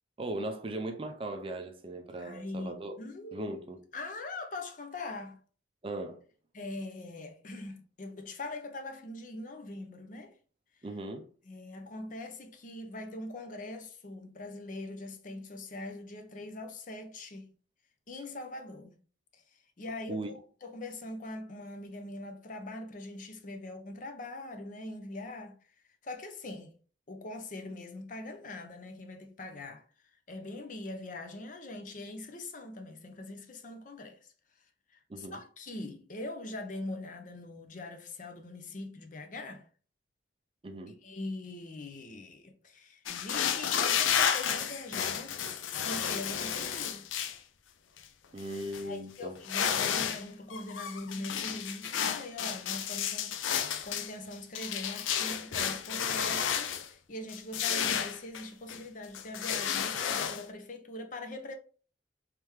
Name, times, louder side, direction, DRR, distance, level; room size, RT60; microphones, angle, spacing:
voice 1, 0.2-3.0 3.3-3.8 5.8-6.2 10.8-11.3 20.1-20.3 35.1-35.4 40.6-41.0 48.3-49.3, right 1 dB, 30° right, 0.4 m, -38 dB
voice 2, 2.2-3.5 3.9-5.4 6.5-10.3 11.5-17.5 18.1-19.0 19.3-19.4 19.8-20.2 20.6-25.6 26.0-26.7 27.1-29.8 30.3-34.2 34.9-39.7 41.0-45.4 45.8-47.1 48.8-61.5, left 2 dB, 45° left, 0.6 m, -42 dB
sound 1, 43.1-47.4 48.0-48.1 48.4-48.8 49.4-50.2 50.5-56.9 57.3-58.8 59.1-60.4, left 8 dB, 85° left, 0.4 m, -32 dB
3.4 x 3.3 x 3.1 m
head